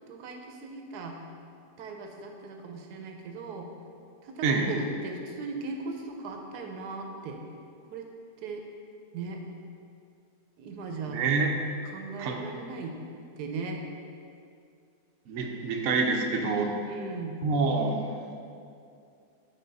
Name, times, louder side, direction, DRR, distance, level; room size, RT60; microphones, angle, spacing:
voice 1, 0.1-1.2 1.8-3.7 4.2-7.4 7.9-8.1 8.4-8.6 9.1-9.4 10.6-11.2 11.9-13.0 13.4-13.8 16.8-17.4, right 3 dB, 85° right, 3 dB, 1.3 m, -38 dB
voice 2, 4.4-4.7 11.1-11.5 12.2-12.4 15.3-16.7 17.4-18.0, right 4 dB, 60° right, 2 dB, 0.9 m, -26 dB
8.4 x 4.0 x 4.0 m, 2.5 s
omnidirectional pair, 1.7 m